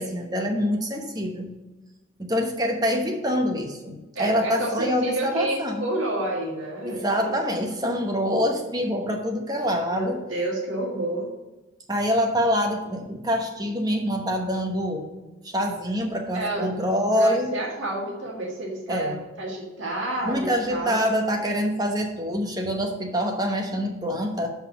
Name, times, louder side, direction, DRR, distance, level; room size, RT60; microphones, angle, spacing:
voice 1, 0.0-1.5 2.2-5.8 6.8-10.2 11.9-15.1 15.4-17.5 18.9-19.2 20.2-24.5, equal, 20° right, 3 dB, 0.9 m, -25 dB
voice 2, 4.2-7.3 9.9-11.3 16.3-16.7 17.1-19.1 19.4-21.0, right 1 dB, 70° right, -2 dB, 1.8 m, -29 dB
5.6 x 5.6 x 6.0 m, 1.1 s
head